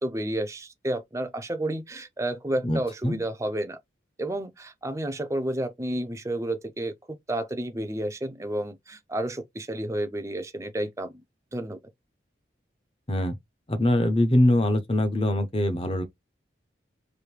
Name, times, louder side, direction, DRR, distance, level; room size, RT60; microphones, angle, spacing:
voice 1, 0.0-3.8 4.2-11.2 11.5-11.8, right 1 dB, 15° right, 0.5 m, -31 dB
voice 2, 2.6-3.2 13.1-13.4 13.7-16.0, left 1 dB, 30° left, 0.7 m, -23 dB
5.0 x 2.6 x 3.1 m
head